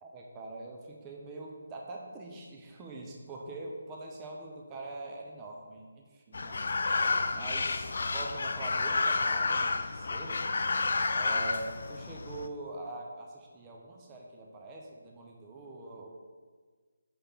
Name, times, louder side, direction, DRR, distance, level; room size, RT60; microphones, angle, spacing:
voice 1, 0.0-6.6 7.3-10.4 11.1-16.1, right 2 dB, 20° right, 0 dB, 0.7 m, -43 dB
sound 1, 6.3-12.5, left 3 dB, 60° left, 0.4 m, -30 dB
5.9 x 3.3 x 5.7 m, 1.5 s
figure-of-eight pair, 155°, 0 cm